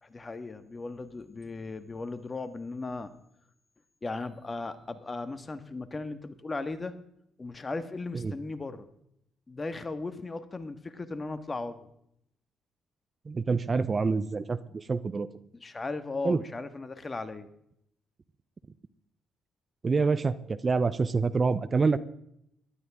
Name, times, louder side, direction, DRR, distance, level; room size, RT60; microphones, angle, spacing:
voice 1, 0.0-3.1 4.0-7.0 7.4-8.9 9.5-11.9 15.6-17.5, left 3 dB, 30° left, 10 dB, 1.7 m, -37 dB
voice 2, 13.3-15.3 16.2-16.4 19.8-22.0, right 4 dB, 40° right, 15 dB, 0.8 m, -27 dB
18.5 x 12.5 x 3.7 m, 0.75 s
hypercardioid pair, 50°, 0 cm